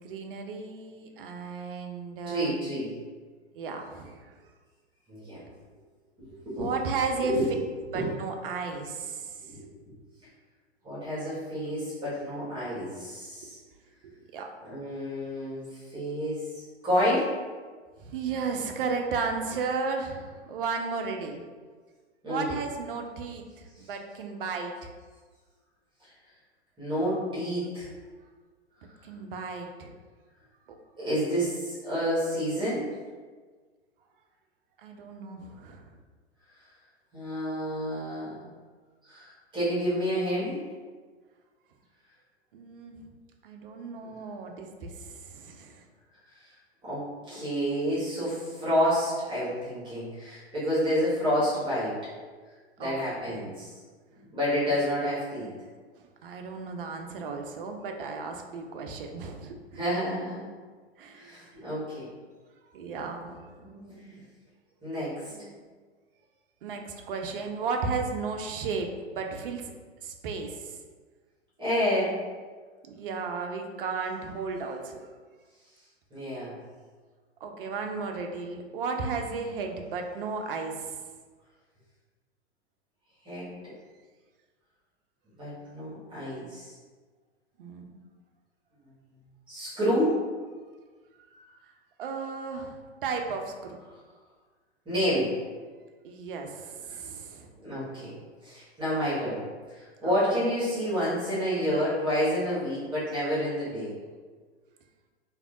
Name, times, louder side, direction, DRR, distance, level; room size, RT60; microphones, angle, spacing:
voice 1, 0.0-2.5 3.5-4.3 6.6-7.4 7.9-9.6 14.0-14.5 18.0-21.4 22.3-24.9 29.0-29.9 30.7-30.8 34.8-35.9 42.5-43.0 43.4-45.9 52.8-53.0 53.3-53.5 56.0-59.8 61.0-61.5 62.7-63.5 66.6-69.7 70.0-70.8 72.9-75.0 77.4-81.0 87.6-88.0 91.3-91.5 92.0-92.8 93.0-93.8 96.0-97.5 100.0-100.1, right 4 dB, 50° right, 4 dB, 0.5 m, -34 dB
voice 2, 2.3-3.0 5.1-5.4 6.3-6.7 7.2-7.4 7.9-8.1 9.4-9.6 10.8-13.6 14.6-17.3 22.2-22.5 23.7-23.8 26.8-27.9 31.0-32.9 37.1-38.3 39.0-40.6 44.0-44.2 46.4-46.5 46.8-52.0 52.8-53.7 54.1-55.5 59.7-60.5 61.1-62.0 63.6-64.2 64.8-65.5 71.6-72.2 76.1-76.5 83.2-83.6 85.4-86.7 89.5-90.2 94.8-95.3 97.6-98.1 98.4-99.4 99.7-103.9, equal, 15° right, -11 dB, 1.5 m, -29 dB
3.3 x 2.7 x 2.5 m, 1.5 s
figure-of-eight pair, 105°, 35 cm